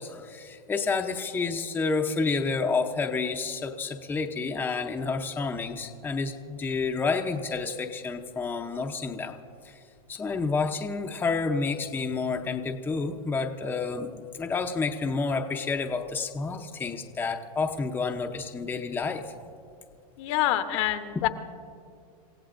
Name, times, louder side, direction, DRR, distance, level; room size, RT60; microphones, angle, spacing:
voice 1, 0.0-9.4 9.6-9.8 10.1-19.3, left 4 dB, 10° left, 3 dB, 0.7 m, -29 dB
voice 2, 20.2-21.3, left 13 dB, 50° left, 9 dB, 0.9 m, -26 dB
27.5 x 15.5 x 2.6 m, 2.4 s
supercardioid pair, 140°, 20 cm